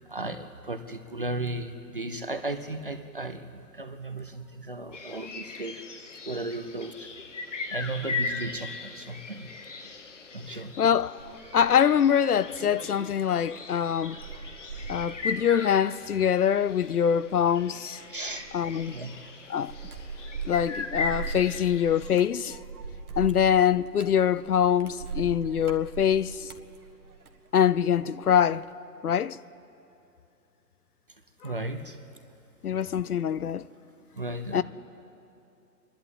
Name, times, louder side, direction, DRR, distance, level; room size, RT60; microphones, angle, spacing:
voice 1, 0.0-5.8 6.3-7.1 7.7-9.5 10.3-10.8 18.1-18.6 18.8-19.1 31.4-32.0 34.2-34.6, right 2 dB, 35° right, 0.7 m, -35 dB
sound 1, 4.9-22.2, left 4 dB, 45° left, 1.2 m, -39 dB
voice 2, 10.8-11.2 11.5-14.2 14.9-18.0 18.5-18.9 19.5-19.7 20.4-22.6 23.2-26.5 27.5-28.6 29.0-29.4 31.4-31.5 32.6-33.6 34.5-34.6, left 8 dB, 65° left, 0.6 m, -24 dB
sound 2, 11.2-27.9 28.2-28.7, right 5 dB, 60° right, 1.7 m, -41 dB
26.5 x 11.5 x 9.0 m
hypercardioid pair, 175°, 49 cm